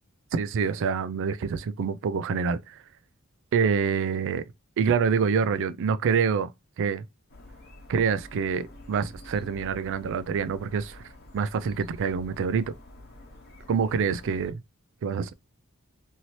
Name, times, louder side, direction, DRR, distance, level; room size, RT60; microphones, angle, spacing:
voice 1, 0.3-2.8 3.5-4.4 4.8-6.5 6.8-7.0 7.9-11.0 11.3-12.7 13.7-14.6 15.0-15.3, right 6 dB, 55° right, 0.3 m, -26 dB
sound 1, 7.3-14.5, left 1 dB, 50° left, 0.9 m, -48 dB
2.7 x 2.7 x 3.0 m
head